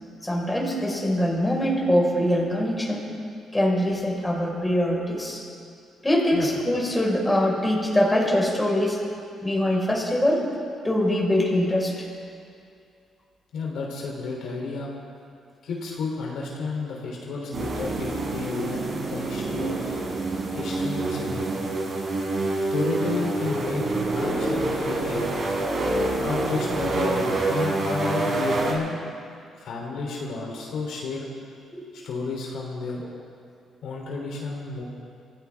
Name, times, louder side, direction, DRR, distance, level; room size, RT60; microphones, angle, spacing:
voice 1, 0.2-3.1 3.5-5.4 6.0-9.0 9.4-10.4 10.8-12.1 31.7-31.8, left 1 dB, 15° left, -2 dB, 4.5 m, -23 dB
voice 2, 13.5-14.9 15.6-20.0 20.5-21.8 22.7-23.8 24.2-25.4 26.2-29.0 29.6-31.2 32.0-33.2 33.8-34.8, left 4 dB, 75° left, -2 dB, 3.0 m, -31 dB
sound 1, 17.5-28.7, right 2 dB, 50° right, 3.9 m, -27 dB
25.0 x 15.5 x 3.5 m, 2.4 s
cardioid pair, 90°, 0 cm